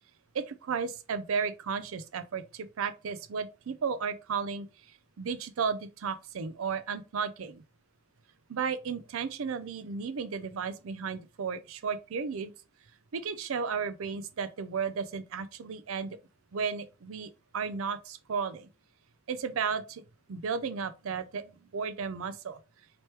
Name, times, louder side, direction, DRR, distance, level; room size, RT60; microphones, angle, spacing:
voice 1, 0.3-7.6 8.5-12.5 13.1-16.2 16.5-18.7 19.3-20.0 20.3-22.6, right 6 dB, 70° right, 0.4 m, -34 dB
3.0 x 3.0 x 3.2 m
head